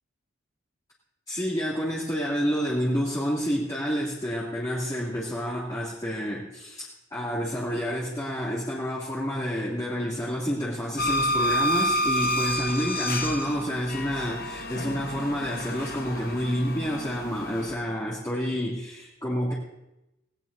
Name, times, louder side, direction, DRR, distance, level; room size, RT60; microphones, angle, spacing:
voice 1, 1.3-19.5, equal, 20° left, -7 dB, 2.5 m, -29 dB
sound 1, 11.0-17.7, left 1 dB, 45° left, 1.1 m, -29 dB
19.0 x 18.5 x 2.7 m, 0.93 s
head